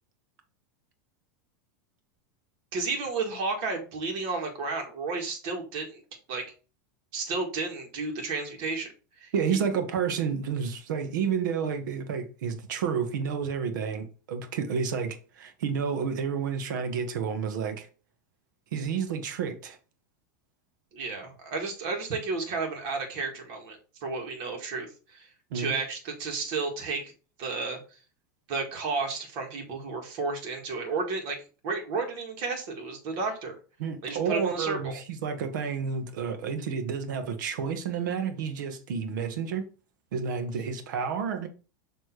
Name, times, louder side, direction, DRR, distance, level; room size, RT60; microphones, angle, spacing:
voice 1, 2.7-6.0 6.3-6.4 7.1-8.9 9.2-9.3 20.9-25.3 25.5-27.1 27.4-27.8 28.5-33.6 34.0-35.0, right 4 dB, 50° right, 2.0 m, -32 dB
voice 2, 9.3-17.9 18.7-19.8 25.5-25.8 33.8-39.7 40.1-41.5, right 6 dB, 80° right, 1.3 m, -30 dB
6.6 x 3.3 x 4.5 m
supercardioid pair, 140°, 10 cm